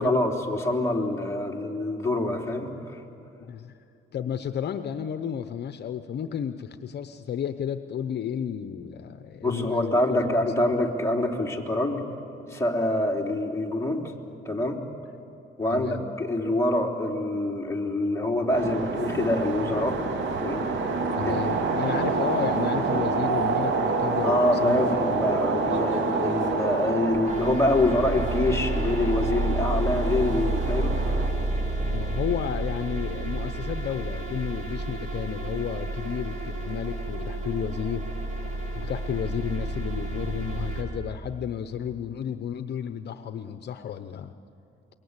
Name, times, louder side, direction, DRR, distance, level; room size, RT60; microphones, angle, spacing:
voice 1, 0.0-3.0 9.4-12.0 12.5-14.1 14.4-14.8 15.6-20.0 20.4-20.9 21.2-21.4 22.9-23.0 24.2-31.0, left 1 dB, 15° left, -1 dB, 3.5 m, -25 dB
voice 2, 3.4-3.7 4.1-10.2 10.6-10.7 15.7-16.0 21.1-25.2 31.8-38.1 38.8-44.3, left 8 dB, 55° left, 9 dB, 0.9 m, -32 dB
sound 1, 18.5-31.3, right 4 dB, 70° right, 2.5 m, -28 dB
sound 2, 27.1-40.8, right 2 dB, 35° right, 5.6 m, -30 dB
27.0 x 22.5 x 8.2 m, 2.8 s
cardioid pair, 90°, 20 cm